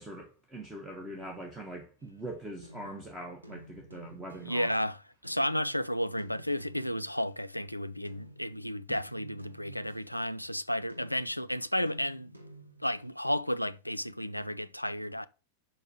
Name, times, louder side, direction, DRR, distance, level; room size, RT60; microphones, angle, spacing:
voice 1, 0.0-4.7, right 1 dB, 10° right, 1.4 m, -42 dB
sound 1, 2.0-4.8 5.2-7.6 8.0-13.3, right 1 dB, 85° right, 1.0 m, -52 dB
voice 2, 4.4-12.3 12.8-15.3, equal, 90° left, 0.4 m, -32 dB
5.4 x 5.3 x 6.3 m
figure-of-eight pair, 90°, 0 cm